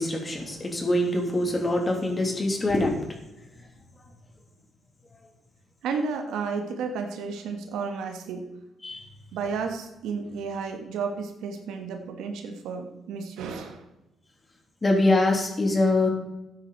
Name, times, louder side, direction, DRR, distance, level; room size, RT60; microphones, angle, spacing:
voice 1, 0.0-3.0 8.8-9.0 14.8-16.1, left 2 dB, 25° left, 1 dB, 3.1 m, -24 dB
voice 2, 5.8-8.5 9.3-13.8, right 5 dB, 85° right, 5 dB, 1.6 m, -32 dB
13.5 x 9.4 x 4.3 m, 0.95 s
cardioid pair, 90°, 0 cm